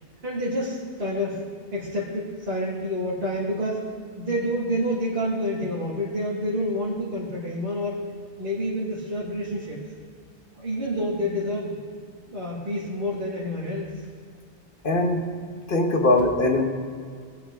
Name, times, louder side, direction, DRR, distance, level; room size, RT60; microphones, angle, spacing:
voice 1, 0.2-1.4 1.7-3.9 4.2-8.1 8.4-9.8 10.6-11.7 12.3-13.9, equal, 55° right, -8 dB, 2.1 m, -28 dB
voice 2, 14.8-15.2 15.7-16.6, left 2 dB, 55° left, 2 dB, 1.3 m, -21 dB
19.0 x 7.8 x 3.6 m, 2.1 s
omnidirectional pair, 1.1 m